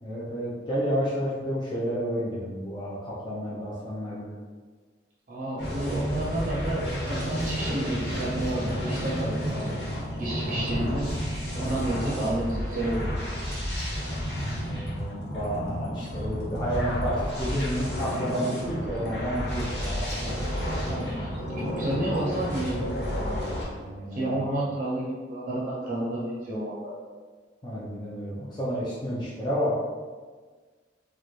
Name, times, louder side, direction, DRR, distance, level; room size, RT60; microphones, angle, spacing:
voice 1, 0.0-4.3 10.4-10.7 14.6-20.4 23.7-24.5 27.6-29.7, equal, 25° left, -9 dB, 0.6 m, -31 dB
voice 2, 5.3-9.7 10.1-11.1 11.5-13.1 20.6-21.3 21.6-23.4 24.0-26.9, right 1 dB, 45° right, -5 dB, 0.6 m, -31 dB
sound 1, 5.6-23.6, equal, 65° left, 1.3 m, -31 dB
4.5 x 2.2 x 3.1 m, 1.5 s
head